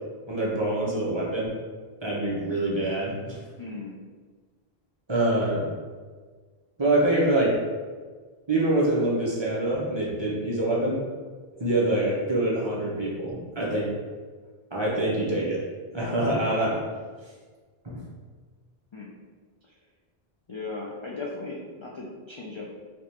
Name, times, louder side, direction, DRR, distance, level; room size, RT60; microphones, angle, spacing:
voice 1, 0.3-1.5 2.0-3.4 5.1-5.6 6.8-7.5 8.5-11.0 11.6-13.9 14.7-15.6 15.9-16.8 17.8-18.0, right 1 dB, 30° right, -5 dB, 0.7 m, -25 dB
voice 2, 3.6-3.9 18.9-19.1 19.6-19.7 20.5-22.7, left 3 dB, 50° left, -4 dB, 0.3 m, -37 dB
4.6 x 2.3 x 2.8 m, 1.5 s
omnidirectional pair, 1.1 m